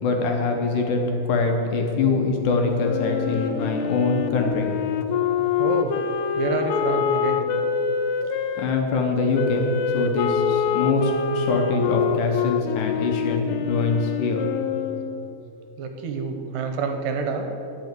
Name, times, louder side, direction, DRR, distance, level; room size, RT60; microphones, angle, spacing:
voice 1, 0.0-4.7 8.6-14.5, left 3 dB, 70° left, 2 dB, 2.4 m, -23 dB
Wind instrument woodwind instrument, 2.8-8.7 9.3-15.2, left 7 dB, 85° left, 1.7 m, -25 dB
voice 2, 5.6-6.0 6.4-7.5 15.8-17.5, right 4 dB, 75° right, 4 dB, 2.4 m, -27 dB
11.0 x 5.9 x 9.0 m, 2.8 s
omnidirectional pair, 4.3 m